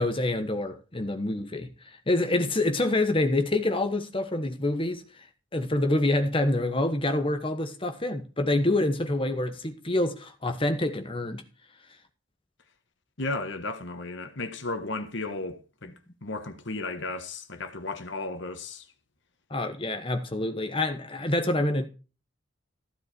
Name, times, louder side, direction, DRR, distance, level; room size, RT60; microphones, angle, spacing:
voice 1, 0.0-1.7 2.1-5.0 5.5-11.4 19.5-21.9, left 2 dB, 25° left, 1.2 m, -26 dB
voice 2, 13.2-15.9 16.2-18.8, left 2 dB, 60° left, 1.5 m, -34 dB
15.0 x 7.7 x 4.4 m
head